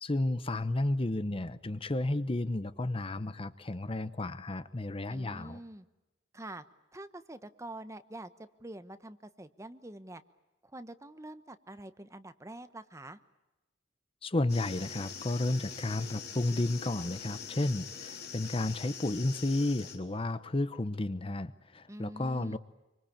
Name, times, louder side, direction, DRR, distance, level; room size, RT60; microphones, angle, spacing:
voice 1, 0.0-5.6 14.2-22.6, left 2 dB, 30° left, 14 dB, 0.9 m, -32 dB
voice 2, 5.1-5.9 6.3-6.6 6.9-10.2 10.6-13.2 21.9-22.6, right 1 dB, 15° right, 11 dB, 1.1 m, -46 dB
sound 1, 14.5-20.0, left 6 dB, 60° left, 3.7 m, -43 dB
26.5 x 25.0 x 8.7 m, 1.0 s
head